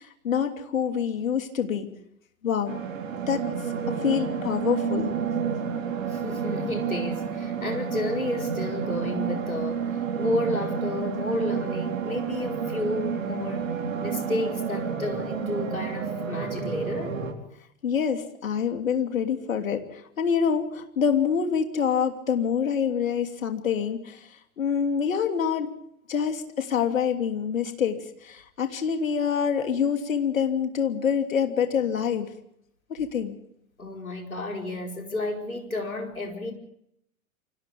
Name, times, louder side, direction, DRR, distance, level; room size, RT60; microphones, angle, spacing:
voice 1, 0.0-1.9 2.4-2.8 3.3-3.4 3.9-5.1 17.8-24.3 24.6-25.8 26.1-32.3 32.9-33.3, left 7 dB, 70° left, 3.1 m, -26 dB
sound 1, 2.7-17.3, right 6 dB, 70° right, 4.3 m, -30 dB
voice 2, 6.0-13.7 14.0-17.1 33.8-36.5, left 2 dB, 90° left, 5.0 m, -31 dB
29.5 x 25.5 x 3.6 m
figure-of-eight pair, 90°, 41 cm